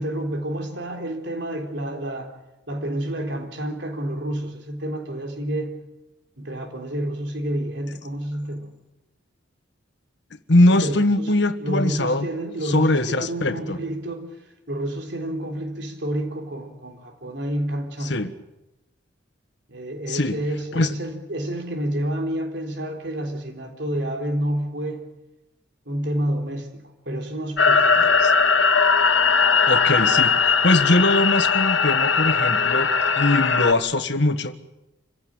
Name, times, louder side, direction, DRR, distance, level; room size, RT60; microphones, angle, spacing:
voice 1, 0.0-2.3 2.7-5.8 6.4-8.7 10.7-11.3 11.6-14.3 14.7-18.2 19.7-25.1 25.9-28.2, right 1 dB, 65° right, 3 dB, 3.8 m, -29 dB
voice 2, 10.5-12.3 12.6-13.8 18.0-18.3 20.1-20.4 20.7-21.0 28.2-28.3 29.7-32.9 33.2-34.5, left 2 dB, 60° left, 10 dB, 1.5 m, -21 dB
sound 1, 27.6-33.7, left 5 dB, 80° left, 1.6 m, -19 dB
27.5 x 16.5 x 8.9 m, 0.98 s
head